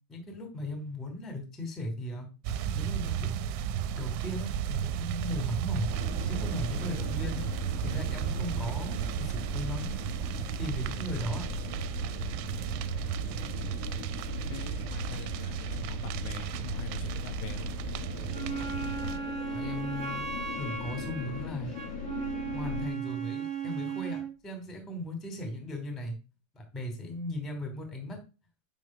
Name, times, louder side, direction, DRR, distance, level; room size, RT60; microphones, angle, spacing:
voice 1, 0.1-2.3 2.7-3.3 3.9-5.9 6.3-7.5 7.8-9.9 10.6-11.5 19.5-21.8 22.4-26.1 26.5-28.2, left 1 dB, ahead, 4 dB, 1.6 m, -37 dB
maple fire, 2.5-19.2, right 9 dB, 85° right, 3.1 m, -34 dB
sound 1, 5.9-22.9, left 5 dB, 65° left, 2.8 m, -40 dB
voice 2, 13.4-13.8 14.5-17.7, left 7 dB, 80° left, 7 dB, 3.8 m, -43 dB
Wind instrument woodwind instrument, 18.3-24.3, right 6 dB, 30° right, 1.2 m, -36 dB
11.0 x 3.8 x 6.0 m, 0.32 s
omnidirectional pair, 5.5 m